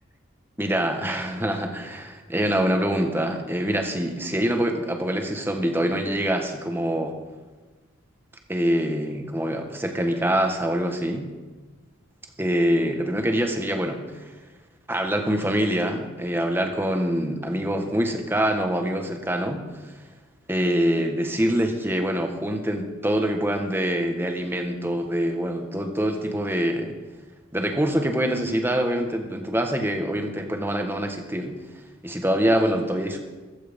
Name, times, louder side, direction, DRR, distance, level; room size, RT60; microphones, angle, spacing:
voice 1, 0.6-7.2 8.5-11.3 12.4-14.3 14.9-19.9 20.5-26.9 27.5-31.6 32.0-33.2, equal, 10° right, 4 dB, 1.5 m, -25 dB
15.0 x 14.0 x 5.3 m, 1.3 s
head